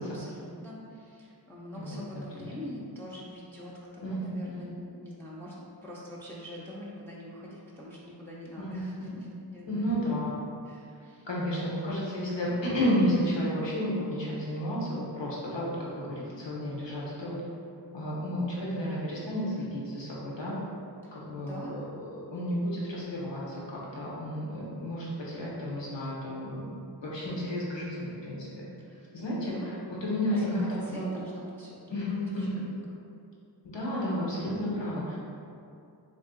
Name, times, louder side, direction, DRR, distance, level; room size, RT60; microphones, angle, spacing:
voice 1, 0.0-9.9 10.6-11.3 21.0-21.8 28.8-29.1 29.4-30.4 30.8-33.0, left 1 dB, 5° left, -6 dB, 0.5 m, -45 dB
voice 2, 1.7-2.5 4.0-4.7 8.6-9.2 9.7-10.3 11.3-17.4 17.9-20.6 21.1-26.6 27.0-28.5 29.1-31.1 31.9-32.7 33.6-35.2, equal, 80° left, -6 dB, 1.0 m, -32 dB
3.5 x 2.7 x 3.7 m, 2.5 s
wide cardioid pair, 65°, 43 cm